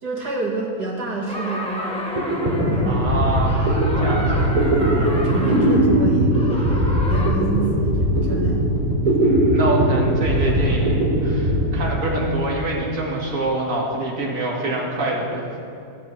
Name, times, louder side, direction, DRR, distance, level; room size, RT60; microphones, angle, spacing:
voice 1, 0.0-2.1 2.6-3.1 4.8-6.4 7.1-8.6, right 3 dB, 85° right, -1 dB, 2.3 m, -28 dB
sound 1, 1.3-7.3, left 1 dB, 5° left, 1.3 m, -31 dB
sound 2, 1.9-2.0 2.2-12.6, right 1 dB, 25° right, 2.6 m, -20 dB
voice 2, 2.8-3.6 4.0-4.5 9.2-15.4, right 2 dB, 55° right, -3 dB, 2.3 m, -25 dB
22.5 x 8.1 x 3.3 m, 2.6 s
omnidirectional pair, 1.7 m